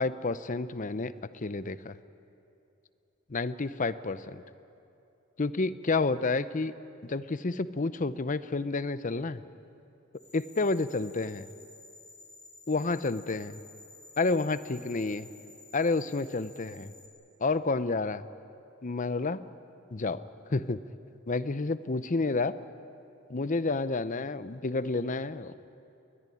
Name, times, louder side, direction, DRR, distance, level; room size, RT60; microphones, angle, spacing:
voice 1, 0.0-2.0 3.3-4.4 5.4-6.7 7.0-9.4 10.3-11.5 12.7-13.6 14.2-15.3 15.7-16.9 17.4-18.2 18.8-19.5 19.9-20.2 20.5-20.9 21.3-22.6 23.3-25.5, left 3 dB, 40° left, 14 dB, 0.7 m, -30 dB
sound 1, 10.1-17.1, left 3 dB, 80° left, 3.7 m, -53 dB
21.5 x 20.5 x 9.9 m, 2.8 s
head